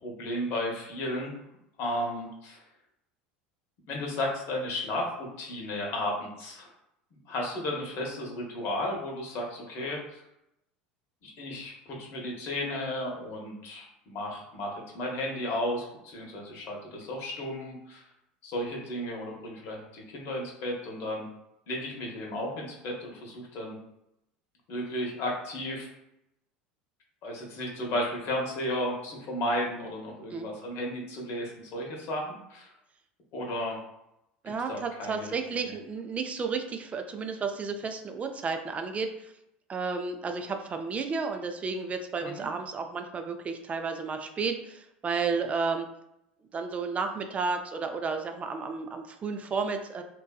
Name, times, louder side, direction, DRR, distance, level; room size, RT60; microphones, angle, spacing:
voice 1, 0.0-1.4 1.8-2.6 3.9-6.7 7.1-10.2 11.2-18.0 18.4-21.3 21.7-23.8 24.7-25.9 27.2-32.7 33.3-33.8 34.7-35.3 35.6-35.7 42.2-42.4, left 1 dB, 55° left, 0 dB, 0.8 m, -34 dB
voice 2, 34.4-39.3 39.7-45.9 46.5-50.0, right 4 dB, 25° right, 6 dB, 0.3 m, -32 dB
2.6 x 2.2 x 2.2 m, 0.83 s
hypercardioid pair, 80°, 5 cm